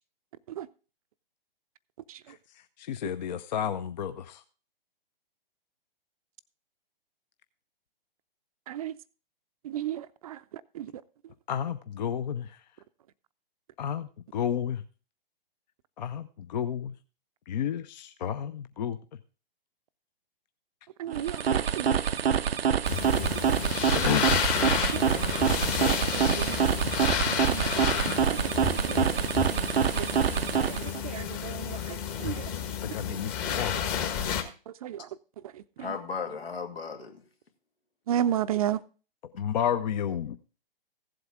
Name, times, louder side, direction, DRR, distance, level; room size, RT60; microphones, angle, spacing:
voice 1, 2.8-4.4 11.5-12.6 13.8-14.8 16.0-16.9 17.5-19.0 23.9-24.8 32.8-34.0 39.3-40.4, left 9 dB, 50° left, 0.7 m, -31 dB
voice 2, 9.6-10.4 10.7-10.9 21.0-21.9 23.0-23.3 23.7-24.2 24.9-25.0 25.8-26.7 27.5-28.4 28.8-29.1 30.6-32.5 34.7-35.1 35.5-35.6 38.1-38.8, right 11 dB, 40° right, 0.5 m, -34 dB
sound 1, 21.1-31.0, right 7 dB, 85° right, 0.5 m, -26 dB
sound 2, 22.8-34.4, left 8 dB, 30° left, 1.4 m, -31 dB
voice 3, 35.8-37.3, left 5 dB, 80° left, 2.2 m, -36 dB
15.5 x 7.9 x 3.6 m
figure-of-eight pair, 125°, 29 cm